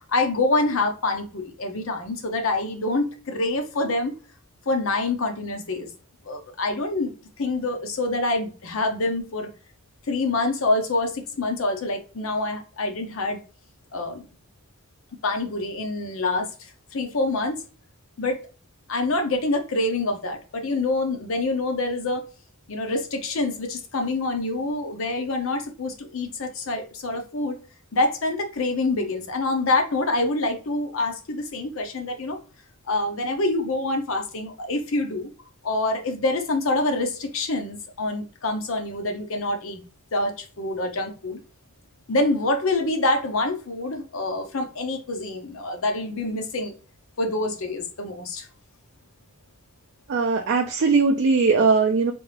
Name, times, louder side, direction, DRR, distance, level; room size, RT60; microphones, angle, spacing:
voice 1, 0.1-4.1 4.7-5.9 6.3-9.5 10.1-13.4 13.9-14.2 15.2-16.5 16.9-17.6 18.2-18.4 18.9-22.2 22.7-27.6 27.9-32.4 32.9-35.3 35.6-39.8 40.1-41.4 42.1-46.7 47.2-48.5, left 2 dB, 65° left, 0.7 m, -26 dB
voice 2, 50.1-52.1, right 4 dB, 55° right, 0.3 m, -20 dB
3.4 x 2.4 x 3.3 m
head